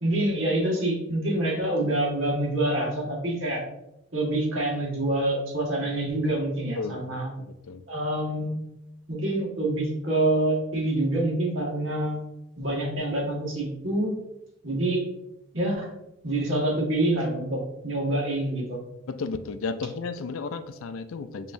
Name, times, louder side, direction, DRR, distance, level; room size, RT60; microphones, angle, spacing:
voice 1, 0.0-3.6 4.1-7.3 7.9-8.5 9.1-12.2 12.6-14.2 14.6-15.0 15.5-15.9 16.2-18.8, right 1 dB, 65° right, -3 dB, 1.5 m, -26 dB
voice 2, 7.4-7.8 19.1-21.5, left 4 dB, 75° left, 11 dB, 0.4 m, -33 dB
6.8 x 3.0 x 2.5 m, 0.89 s
head